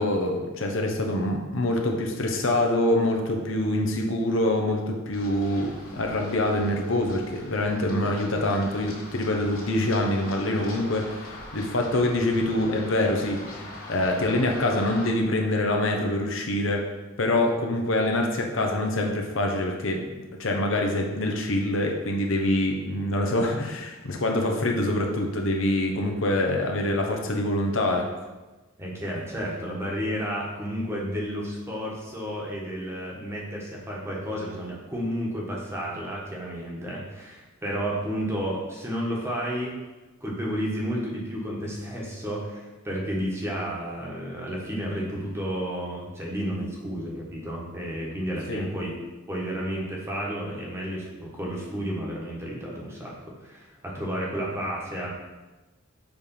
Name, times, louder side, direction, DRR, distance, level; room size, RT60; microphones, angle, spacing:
voice 1, 0.0-16.8 17.2-20.0 20.4-28.0 48.5-48.7, left 1 dB, 70° left, 2 dB, 0.9 m, -25 dB
Run, 5.1-15.1, left 1 dB, 85° left, 2.3 m, -42 dB
voice 2, 28.8-39.8 40.2-48.9 49.3-53.1 53.4-55.1, equal, 15° right, -3 dB, 1.3 m, -31 dB
7.1 x 3.5 x 5.4 m, 1.1 s
head